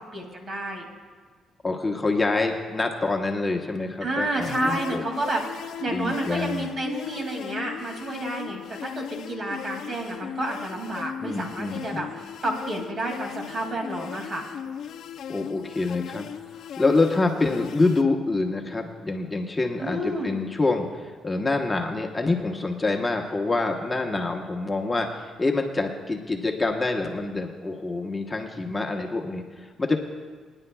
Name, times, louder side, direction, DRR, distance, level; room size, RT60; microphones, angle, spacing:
voice 1, 0.1-0.9 4.0-12.1 12.4-14.4 19.8-20.3, right 1 dB, 45° right, 2 dB, 2.4 m, -30 dB
voice 2, 1.6-5.0 5.9-6.7 11.2-12.0 15.3-16.3 16.5-30.0, left 3 dB, 20° left, 2 dB, 1.0 m, -26 dB
sound 1, 4.4-18.0, left 8 dB, 70° left, 0.4 m, -37 dB
24.0 x 9.9 x 2.3 m, 1.5 s
cardioid pair, 90°, 0 cm